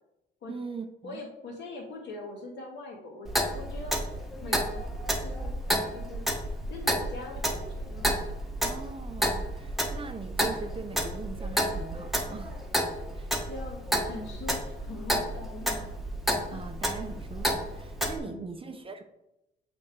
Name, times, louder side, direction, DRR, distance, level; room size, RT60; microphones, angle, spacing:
voice 1, 0.5-1.2 8.6-12.7 13.1-13.3 16.5-19.0, right 4 dB, 25° right, 6 dB, 0.7 m, -41 dB
voice 2, 1.0-4.0 4.4-4.8 5.2-5.5 5.9-6.3 6.7-8.2 13.5-16.0 16.5-16.7 18.2-18.6, left 2 dB, 60° left, -3 dB, 2.5 m, -42 dB
Clock, 3.2-18.2, equal, ahead, 1.2 m, -31 dB
6.9 x 3.5 x 4.7 m, 0.90 s
cardioid pair, 90°, 20 cm